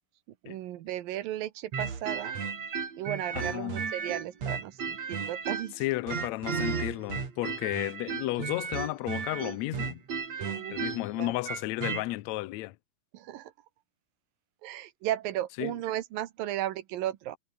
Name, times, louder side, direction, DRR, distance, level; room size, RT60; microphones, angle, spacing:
voice 1, 0.4-2.4 3.0-5.8 10.4-10.8 11.2-11.3 13.1-13.5 14.6-17.4, right 13 dB, 80° right, 2.9 m, -35 dB
sound 1, 1.7-5.8 6.1-12.0, right 5 dB, 50° right, 4.6 m, -34 dB
voice 2, 3.3-3.8 5.8-10.0 10.7-12.7 15.6-15.7, left 18 dB, 85° left, 1.5 m, -33 dB
omnidirectional pair, 4.1 m